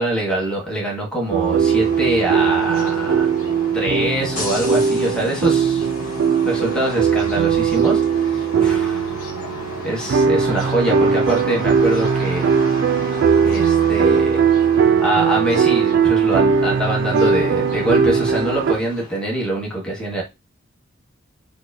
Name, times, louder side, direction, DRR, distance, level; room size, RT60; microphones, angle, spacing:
voice 1, 0.0-3.3 3.7-5.9 6.4-9.2 9.8-12.5 13.4-14.4 15.0-20.2, right 1 dB, 5° left, -3 dB, 1.1 m, -24 dB
sound 1, 1.2-19.3, left 2 dB, 40° left, 1.9 m, -35 dB
sound 2, 1.3-18.7, right 6 dB, 55° right, 0.4 m, -19 dB
4.7 x 2.1 x 2.6 m, 0.24 s
head